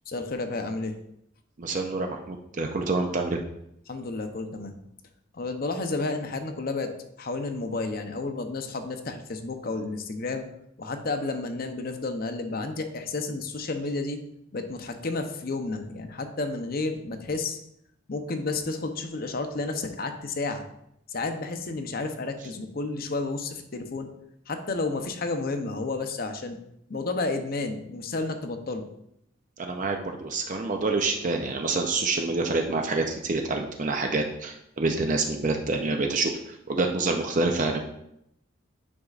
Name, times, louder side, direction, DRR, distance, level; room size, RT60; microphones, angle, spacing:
voice 1, 0.1-0.9 3.9-4.8 5.3-6.9 7.2-10.4 10.8-14.2 14.5-17.6 18.1-20.6 21.1-24.1 24.5-26.6 26.9-28.8, left 3 dB, 45° left, 7 dB, 0.7 m, -31 dB
voice 2, 1.6-3.4 29.6-36.3 36.7-37.8, right 3 dB, 40° right, 3 dB, 0.5 m, -27 dB
9.7 x 5.2 x 2.4 m, 0.78 s
head